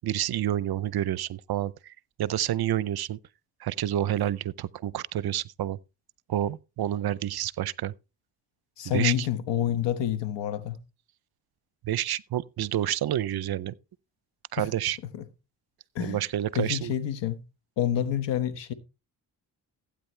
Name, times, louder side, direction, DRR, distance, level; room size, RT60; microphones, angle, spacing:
voice 1, 0.0-1.9 2.2-3.2 3.6-5.8 6.3-7.9 8.9-9.3 11.8-13.7 14.5-15.0 16.0-16.9, right 12 dB, 60° right, 0.6 m, -29 dB
voice 2, 8.8-10.8 14.6-14.7 15.1-15.2 15.9-16.2 16.5-17.4 17.8-18.7, left 10 dB, 90° left, 1.3 m, -28 dB
15.5 x 8.9 x 3.3 m
cardioid pair, 75°, 42 cm